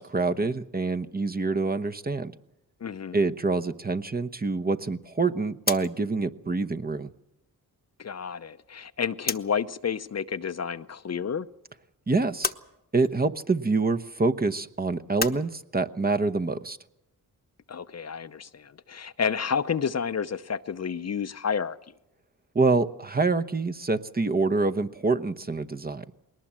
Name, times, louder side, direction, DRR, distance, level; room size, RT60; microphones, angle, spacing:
voice 1, 0.0-2.3 3.1-7.1 12.1-12.5 12.9-16.8 22.5-26.0, right 3 dB, 25° right, 0.9 m, -26 dB
voice 2, 2.8-3.2 8.0-11.5 17.7-21.8, left 6 dB, 40° left, 0.7 m, -30 dB
sound 1, 5.5-9.7 10.0-11.1 11.4-15.4, left 4 dB, 25° left, 1.0 m, -36 dB
20.5 x 19.0 x 7.5 m
cardioid pair, 65°, 38 cm